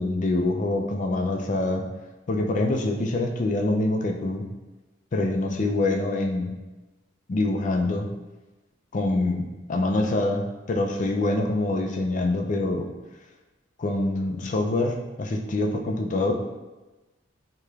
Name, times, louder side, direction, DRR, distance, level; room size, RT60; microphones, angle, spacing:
voice 1, 0.0-1.8 2.3-4.4 5.1-6.5 7.3-8.1 8.9-12.9 13.8-16.3, left 2 dB, 40° left, 3 dB, 0.4 m, -25 dB
4.7 x 2.8 x 2.4 m, 1.1 s
head